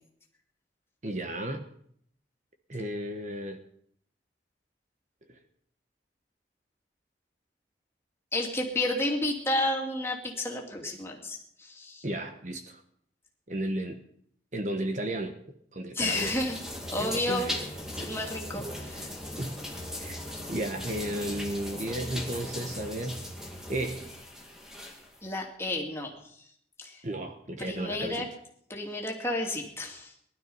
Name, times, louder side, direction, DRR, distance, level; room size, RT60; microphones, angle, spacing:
voice 1, 1.0-1.7 2.7-3.6 12.0-12.8 13.5-14.0 14.5-15.3 15.7-16.4 17.0-17.6 18.5-18.6 19.4-19.6 20.0-20.2 20.5-24.1 27.0-28.3, right 1 dB, 40° right, 5 dB, 1.3 m, -34 dB
voice 2, 8.3-12.0 15.9-16.6 16.9-17.5 17.9-19.1 25.2-26.1 26.8-27.0 27.6-28.3 28.7-30.1, left 1 dB, 15° left, 0 dB, 2.7 m, -31 dB
sound 1, 16.1-25.2, left 1 dB, 5° right, 2.2 m, -38 dB
20.0 x 12.0 x 5.6 m, 0.68 s
head